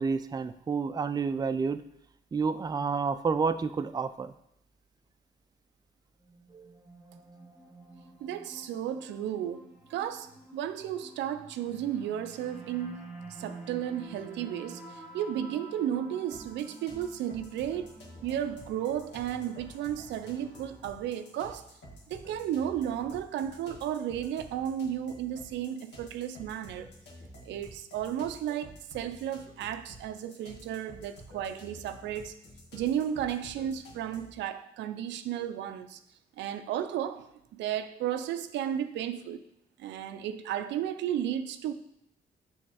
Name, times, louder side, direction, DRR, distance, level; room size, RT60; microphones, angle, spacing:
voice 1, 0.0-1.8 2.3-4.3 6.5-6.7, right 5 dB, 20° right, 11 dB, 0.3 m, -29 dB
sound 1, 6.2-21.5, right 2 dB, ahead, 1.9 m, -50 dB
voice 2, 8.2-17.9 18.2-21.6 22.1-26.9 27.5-32.3 32.7-36.0 36.4-39.4 39.8-41.7, right 10 dB, 90° right, 10 dB, 0.4 m, -34 dB
sound 2, 16.3-34.4, equal, 80° left, 1.5 m, -50 dB
6.1 x 3.2 x 4.8 m, 0.75 s
cardioid pair, 65°, 18 cm